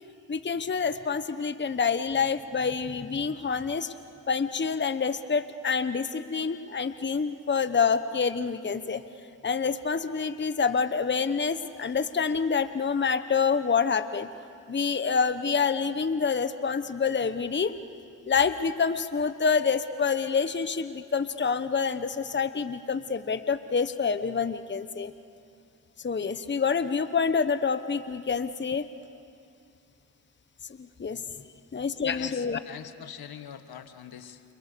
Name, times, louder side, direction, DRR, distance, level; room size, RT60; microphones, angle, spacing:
voice 1, 0.3-3.9 4.3-9.0 9.4-14.3 14.7-17.7 18.3-25.1 26.0-28.9 30.8-31.2 31.7-32.6, left 5 dB, 30° left, 11 dB, 1.1 m, -27 dB
voice 2, 32.2-34.4, left 9 dB, 70° left, 10 dB, 1.6 m, -43 dB
29.0 x 29.0 x 6.9 m, 2.5 s
cardioid pair, 60°, 38 cm